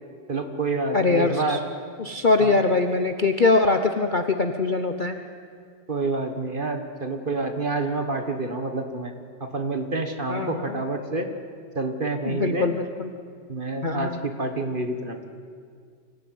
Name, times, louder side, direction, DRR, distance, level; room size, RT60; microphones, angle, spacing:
voice 1, 0.3-1.6 2.4-2.6 5.9-9.1 9.4-11.3 11.7-12.7 13.5-15.2, right 3 dB, 30° right, 6 dB, 1.4 m, -28 dB
voice 2, 0.9-1.6 2.0-5.2 10.3-10.8 12.2-13.1 13.8-14.2, left 3 dB, 70° left, 6 dB, 0.4 m, -22 dB
25.0 x 16.0 x 9.4 m, 2.1 s
omnidirectional pair, 2.3 m